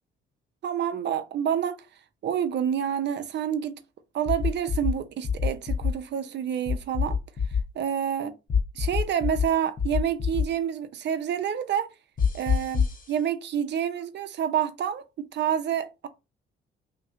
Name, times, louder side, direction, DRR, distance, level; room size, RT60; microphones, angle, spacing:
voice 1, 0.6-1.8 2.2-3.8 4.1-7.2 7.7-8.3 8.8-11.9 12.3-16.1, right 9 dB, 60° right, 0.7 m, -28 dB
sound 1, 4.3-4.9 5.2-5.9 6.7-7.6 8.5-9.4 9.8-10.4 12.2-13.0, left 6 dB, 45° left, 1.0 m, -24 dB
3.0 x 2.9 x 3.6 m
cardioid pair, 90°, 20 cm